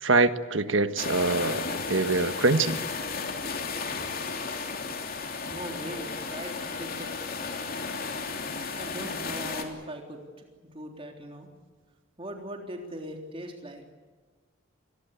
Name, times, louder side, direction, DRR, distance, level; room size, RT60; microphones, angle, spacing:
voice 1, 0.0-2.8, right 3 dB, 70° right, 10 dB, 1.4 m, -24 dB
sound 1, 1.0-9.6, left 4 dB, 45° left, 3.2 m, -34 dB
voice 2, 5.4-7.4 8.7-10.5 10.7-11.5 12.2-13.8, equal, 25° right, 2 dB, 3.6 m, -40 dB
27.5 x 21.0 x 8.3 m, 1.4 s
head